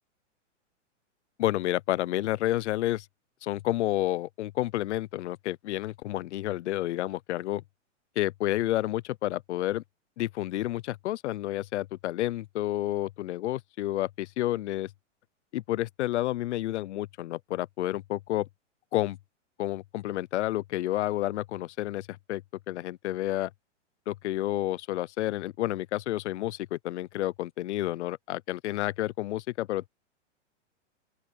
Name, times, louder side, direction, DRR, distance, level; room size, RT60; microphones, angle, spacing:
voice 1, 1.4-3.1 3.4-7.6 8.2-9.8 10.2-14.9 15.5-18.5 18.9-19.2 19.6-22.4 22.7-23.5 24.1-29.9, left 15 dB, 65° left, 0.7 m, -30 dB
open air
hypercardioid pair, 145°, 37 cm